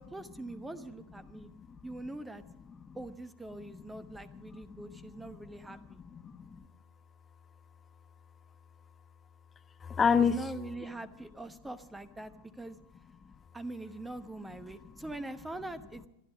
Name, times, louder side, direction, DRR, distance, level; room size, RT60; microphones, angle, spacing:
voice 1, 0.0-1.5 1.8-2.4 2.9-6.0 10.2-12.8 13.5-16.1, right 2 dB, 5° right, 14 dB, 0.9 m, -43 dB
voice 2, 1.3-1.8 2.8-3.0 3.9-5.3 5.6-6.7 9.8-10.5 13.2-13.3 14.8-14.9, left 6 dB, 20° left, 8 dB, 1.1 m, -32 dB
22.5 x 12.5 x 5.0 m, 0.83 s
figure-of-eight pair, 90°, 0 cm